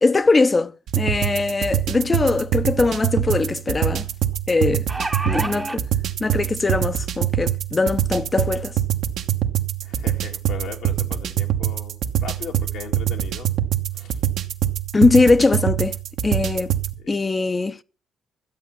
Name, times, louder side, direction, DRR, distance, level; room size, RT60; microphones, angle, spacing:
voice 1, 0.0-4.1 4.5-4.8 5.2-5.8 6.2-8.7 14.9-16.0 16.2-16.7 17.1-17.8, left 3 dB, 25° left, 0.6 m, -20 dB
sound 1, 0.9-16.9, right 11 dB, 75° right, 1.2 m, -25 dB
sound 2, 2.5-2.6 2.9-3.0 4.6-5.8 6.7-6.8 7.2-7.3, right 2 dB, 15° right, 0.8 m, -28 dB
voice 2, 5.3-5.8 9.8-13.5 13.9-14.2 17.0-17.2, left 7 dB, 90° left, 2.5 m, -38 dB
13.5 x 8.1 x 6.7 m
cardioid pair, 90°, 0 cm